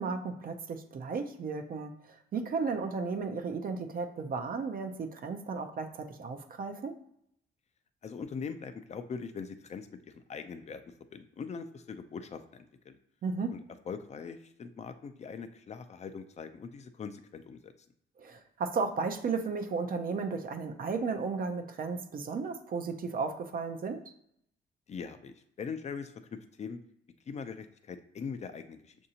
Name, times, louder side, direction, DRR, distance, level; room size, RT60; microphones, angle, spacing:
voice 1, 0.0-7.0 13.2-13.5 18.2-24.0, right 4 dB, 45° right, 6 dB, 0.5 m, -34 dB
voice 2, 8.0-10.8 11.1-13.0 13.5-13.6 13.9-17.7 24.9-26.8 27.3-29.0, left 5 dB, 35° left, 9 dB, 0.4 m, -41 dB
6.4 x 2.6 x 2.8 m, 0.74 s
cardioid pair, 90°, 20 cm